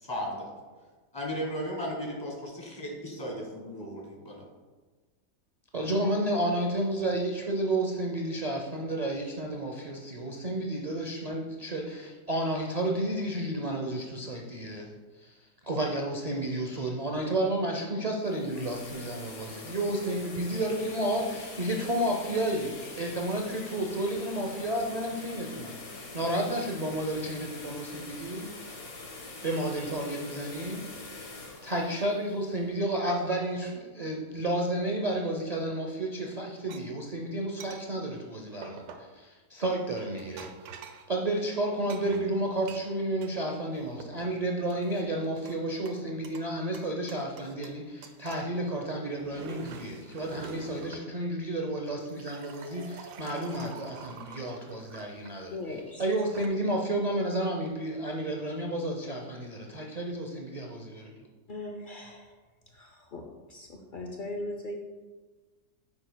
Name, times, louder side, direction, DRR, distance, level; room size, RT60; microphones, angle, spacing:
voice 1, 0.0-0.5 1.1-4.4, equal, 15° left, -1 dB, 1.4 m, -35 dB
voice 2, 5.7-14.9 15.2-15.4 15.6-28.7 29.4-30.8 31.6-38.8 39.1-40.5 41.1-55.6 56.0-61.1, right 1 dB, 65° right, 0 dB, 0.4 m, -31 dB
sound 1, 18.1-33.0, left 3 dB, 50° left, 1.4 m, -44 dB
sound 2, 36.7-36.8 37.6-37.8 38.6-39.1 39.9-41.1 41.9-43.4 43.7-44.3 44.7-45.6 45.9-46.5 46.7-47.8 48.0-48.5 49.0-51.1 51.9-55.3 56.1-56.5, right 6 dB, 85° right, 1.2 m, -47 dB
voice 3, 55.5-56.0 61.5-62.3 62.7-64.7, left 2 dB, 85° left, 2 dB, 0.4 m, -39 dB
9.7 x 6.9 x 2.2 m, 1.3 s
omnidirectional pair, 1.7 m